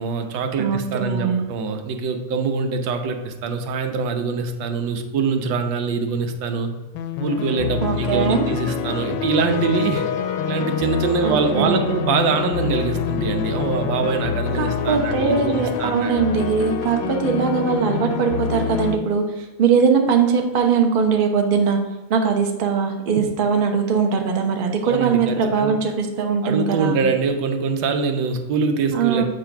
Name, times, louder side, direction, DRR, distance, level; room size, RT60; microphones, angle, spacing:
voice 1, 0.0-6.7 7.2-10.1 10.4-16.3 24.8-25.7 26.4-29.2, right 4 dB, 85° right, 6 dB, 1.4 m, -24 dB
voice 2, 0.6-1.4 7.8-8.5 11.2-11.9 14.5-19.2 19.6-21.8 22.1-27.0 28.9-29.2, right 6 dB, 55° right, 3 dB, 0.5 m, -20 dB
sound 1, 6.9-19.0, left 7 dB, 75° left, 1.1 m, -26 dB
7.5 x 2.5 x 5.7 m, 1.1 s
omnidirectional pair, 2.0 m